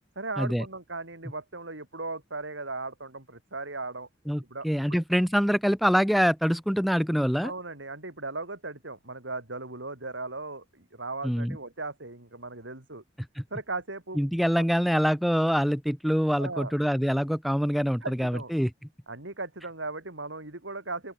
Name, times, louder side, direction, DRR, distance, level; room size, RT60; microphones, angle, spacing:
voice 1, 0.2-4.1 4.5-4.7 7.4-13.0 13.5-14.2 14.5-14.6 16.4-16.7 18.0-18.5 19.1-21.1, right 3 dB, 80° right, 4.2 m, -37 dB
voice 2, 4.3-7.5 11.2-11.6 13.4-13.5 14.2-18.7, equal, ahead, 0.3 m, -25 dB
open air
head